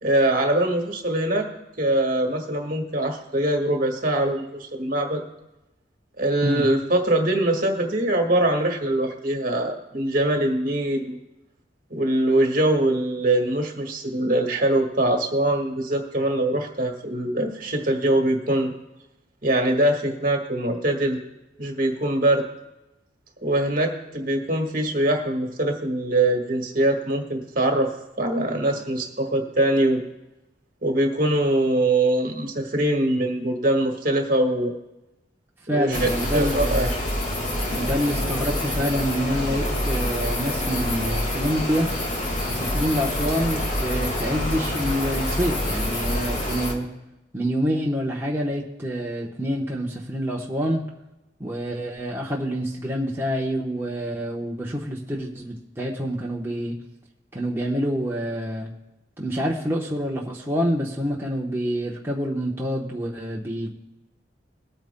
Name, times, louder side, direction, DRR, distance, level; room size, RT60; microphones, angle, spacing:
voice 1, 0.0-1.5 1.8-5.2 6.2-11.2 11.9-18.7 19.4-21.2 21.6-22.5 23.4-27.9 28.2-30.0 30.8-34.7 35.7-36.9, right 1 dB, 50° right, 3 dB, 1.7 m, -23 dB
voice 2, 35.7-36.9 37.7-41.9 42.5-46.9 47.3-50.8 51.4-56.7 57.3-58.7 59.2-63.7, equal, 15° right, -3 dB, 1.0 m, -27 dB
sound 1, 35.9-46.7, left 1 dB, 45° left, 1.7 m, -26 dB
22.0 x 8.9 x 2.2 m, 0.97 s
head